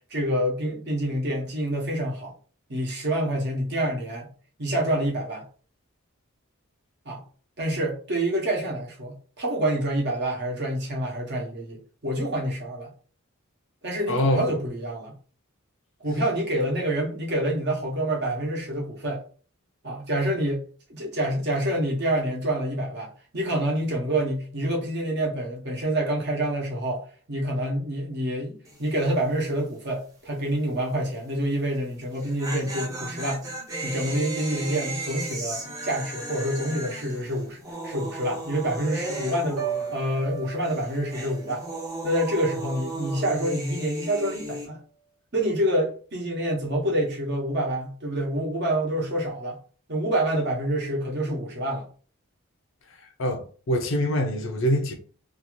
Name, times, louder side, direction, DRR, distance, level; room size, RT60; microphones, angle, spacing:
voice 1, 0.1-2.3 2.7-4.3 4.6-5.4 7.0-7.2 7.6-12.9 13.8-15.1 16.0-19.2 19.8-20.6 20.9-33.5 33.8-39.6 39.9-41.6 42.0-44.8 45.3-49.6 49.9-51.9, right 1 dB, 50° right, 0.9 m, -27 dB
voice 2, 14.1-14.5 53.2-54.9, equal, 60° left, 0.6 m, -24 dB
sound 1, 28.6-29.0 29.3-29.4 32.0-40.4 40.6-44.7, right 1 dB, 15° right, 0.6 m, -35 dB
Piano, 39.6-43.5 43.9-44.3, right 8 dB, 80° right, 0.9 m, -38 dB
2.7 x 2.4 x 3.0 m
head